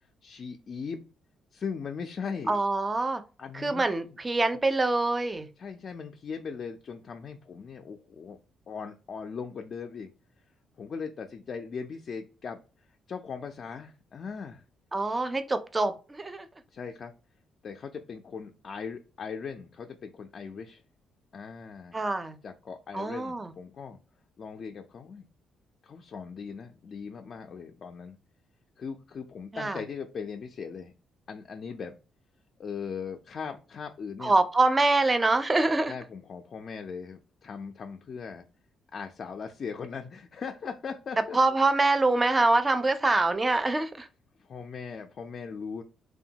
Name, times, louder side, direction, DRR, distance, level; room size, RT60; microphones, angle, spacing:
voice 1, 0.2-1.0 1.5-2.6 3.4-3.8 5.6-8.4 8.7-10.1 10.8-12.6 13.1-14.6 16.7-17.1 17.6-20.8 21.3-22.0 22.4-24.0 24.4-25.2 25.8-28.2 28.8-30.9 31.3-31.9 32.6-34.3 35.9-38.4 38.9-41.4 44.4-45.8, left 6 dB, 50° left, 0.3 m, -39 dB
voice 2, 2.5-3.2 3.5-5.5 14.9-16.5 21.9-22.4 22.9-23.5 29.5-29.8 34.2-35.9 41.3-44.1, right 2 dB, 20° right, 0.4 m, -25 dB
2.7 x 2.2 x 2.7 m
cardioid pair, 90°, 0 cm